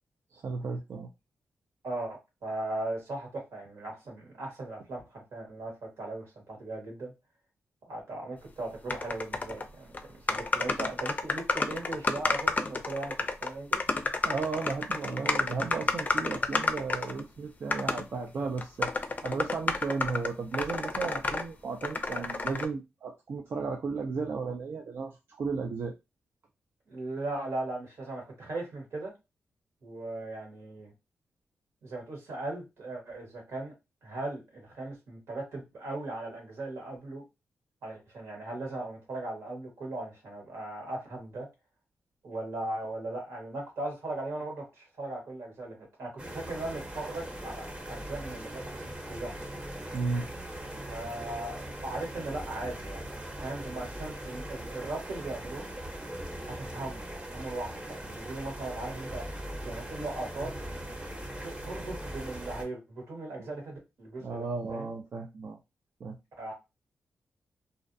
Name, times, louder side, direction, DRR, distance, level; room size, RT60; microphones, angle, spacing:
voice 1, 0.3-1.1 14.2-25.1 25.4-25.9 49.9-50.3 64.2-65.6 66.0-66.2, right 4 dB, 60° right, 1 dB, 0.4 m, -34 dB
voice 2, 1.8-7.1 7.8-13.8 26.9-29.1 29.8-30.9 31.8-33.7 34.0-37.2 37.8-41.5 42.2-49.4 50.9-53.1 53.4-55.7 56.5-57.0 57.3-57.7 58.0-59.2 59.6-60.5 61.4-64.9 66.4-66.5, right 2 dB, 80° right, 1 dB, 1.3 m, -38 dB
sound 1, 8.9-9.7 9.9-10.0 10.3-17.2 17.7-18.0 18.6-21.4 21.8-22.7, left 3 dB, 35° left, 0.4 m, -30 dB
sound 2, 46.2-62.6, right 1 dB, 25° right, 0.8 m, -40 dB
2.5 x 2.0 x 2.6 m, 0.24 s
cardioid pair, 60°, 5 cm